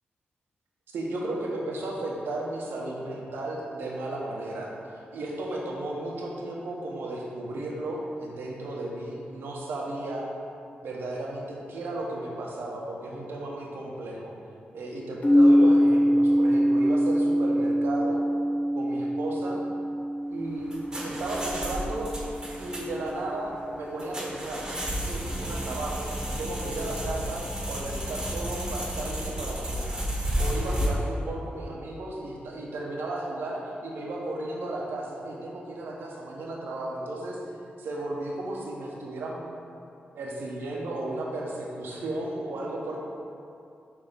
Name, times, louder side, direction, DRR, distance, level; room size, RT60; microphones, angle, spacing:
voice 1, 0.9-4.7 5.1-10.3 10.8-14.3 14.7-18.2 18.7-19.6 20.3-20.7 21.0-22.1 22.6-24.6 24.9-26.1 26.4-30.0 30.4-37.4 37.8-39.4 40.1-43.0, right 2 dB, 90° right, -3 dB, 1.0 m, -34 dB
sound 1, 15.2-23.0, equal, 45° left, 0.9 m, -24 dB
sound 2, 20.4-30.9, equal, 20° right, 1.3 m, -32 dB
6.0 x 3.5 x 5.1 m, 2.5 s
cardioid pair, 85°, 4 cm